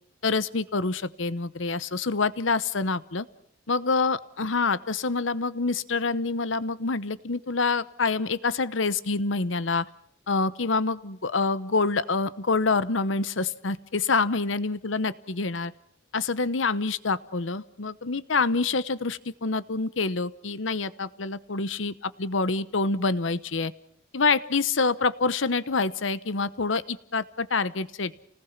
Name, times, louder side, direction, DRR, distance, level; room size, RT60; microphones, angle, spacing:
voice 1, 0.2-3.3 3.7-9.9 10.3-15.7 16.1-23.7 24.1-28.2, left 4 dB, 80° left, 16 dB, 1.0 m, -26 dB
29.0 x 19.5 x 5.9 m, 0.68 s
head